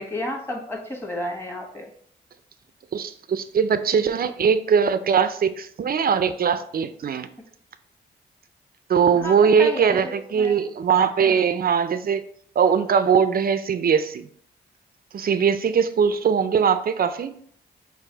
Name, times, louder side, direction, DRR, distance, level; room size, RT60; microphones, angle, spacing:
voice 1, 0.0-1.8 9.1-10.5 11.2-11.4, left 1 dB, 10° left, 0 dB, 1.3 m, -32 dB
voice 2, 2.9-7.3 8.9-12.2 12.6-14.3 15.1-17.3, right 7 dB, 45° right, 11 dB, 0.4 m, -21 dB
4.6 x 2.0 x 3.9 m, 0.62 s
supercardioid pair, 45°, 21 cm